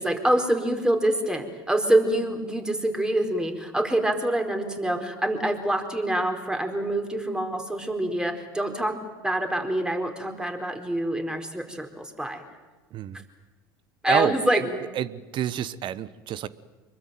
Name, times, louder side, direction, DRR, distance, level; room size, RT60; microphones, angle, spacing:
voice 1, 0.0-9.0 9.2-12.4 14.0-14.8, right 1 dB, 5° right, 4 dB, 4.6 m, -26 dB
voice 2, 12.9-13.2 14.1-16.5, right 10 dB, 50° right, 16 dB, 1.2 m, -29 dB
25.5 x 22.5 x 9.3 m, 1.3 s
hypercardioid pair, 80°, 11 cm